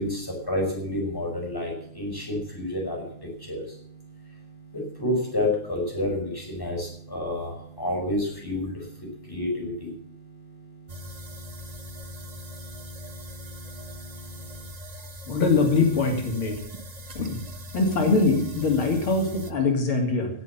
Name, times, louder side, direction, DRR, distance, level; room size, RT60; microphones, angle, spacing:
voice 1, 0.0-14.7, left 1 dB, 10° left, -1 dB, 5.6 m, -31 dB
sound 1, 10.9-19.5, left 1 dB, 55° right, 0.4 m, -41 dB
voice 2, 15.3-16.6 17.2-17.4 17.7-20.3, left 3 dB, 80° left, 2 dB, 3.5 m, -23 dB
16.5 x 8.1 x 7.3 m, 0.63 s
omnidirectional pair, 2.3 m